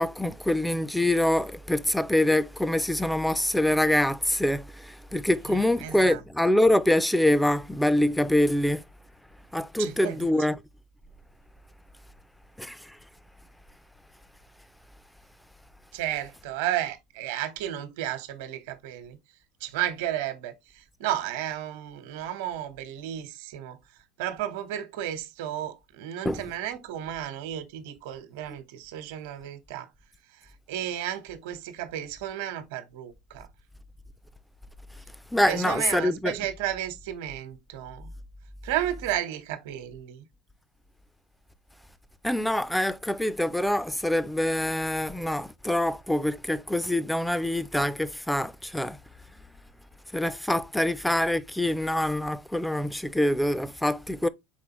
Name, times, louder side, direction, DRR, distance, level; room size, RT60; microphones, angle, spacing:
voice 1, 0.0-8.8 9.5-10.6 12.6-12.9 26.2-26.4 35.3-36.3 42.2-49.0 50.1-54.3, left 1 dB, ahead, 0.3 m, -25 dB
voice 2, 5.5-6.2 9.8-10.2 15.9-19.2 19.6-23.8 24.2-29.9 30.7-33.5 35.5-38.1 38.6-40.3 50.8-50.9, right 12 dB, 75° right, 1.0 m, -33 dB
4.8 x 3.7 x 3.0 m
supercardioid pair, 150°, 0 cm